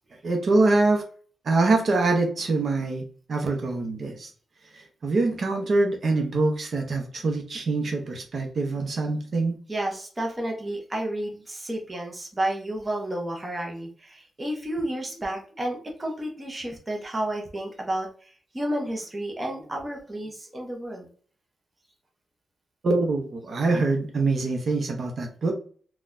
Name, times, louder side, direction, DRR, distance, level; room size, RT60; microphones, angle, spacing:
voice 1, 0.2-1.0 1.4-3.0 3.3-4.3 4.7-9.6 22.8-25.5, right 3 dB, 50° right, 2 dB, 0.7 m, -24 dB
voice 2, 9.7-21.1, right 1 dB, 20° right, 0 dB, 0.8 m, -31 dB
3.9 x 2.3 x 2.5 m, 0.43 s
wide cardioid pair, 130°, 0 cm